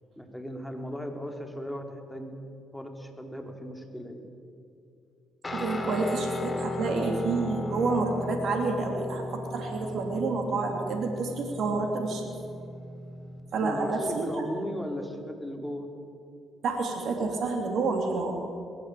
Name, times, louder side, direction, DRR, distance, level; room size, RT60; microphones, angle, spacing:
voice 1, 0.2-2.4 2.7-4.3 13.6-15.9, equal, 5° left, 3 dB, 4.1 m, -37 dB
Guitar, 5.4-13.6, left 1 dB, 25° left, 3.8 m, -36 dB
voice 2, 5.5-12.2 13.5-14.4 16.6-18.3, right 3 dB, 65° right, 2 dB, 3.0 m, -29 dB
20.0 x 17.5 x 8.5 m, 2.5 s
hypercardioid pair, 55°, 0 cm